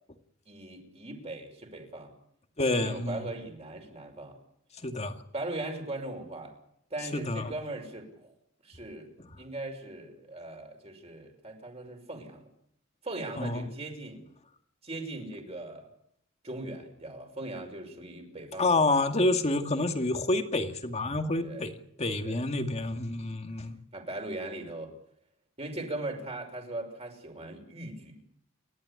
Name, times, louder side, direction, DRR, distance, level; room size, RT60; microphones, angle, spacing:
voice 1, 0.5-2.1 2.7-4.4 5.3-6.5 6.9-8.3 8.6-9.1 9.4-12.5 13.0-14.2 14.8-15.9 16.4-19.0 21.4-21.7 22.2-22.4 23.0-23.3 23.9-24.9 25.6-28.2, right 2 dB, 30° right, 3 dB, 5.8 m, -39 dB
voice 2, 2.6-3.3 4.8-5.1 7.1-7.5 13.4-13.7 18.6-21.7 22.0-23.8, left 2 dB, 30° left, 6 dB, 2.3 m, -28 dB
30.0 x 13.0 x 9.9 m, 0.71 s
head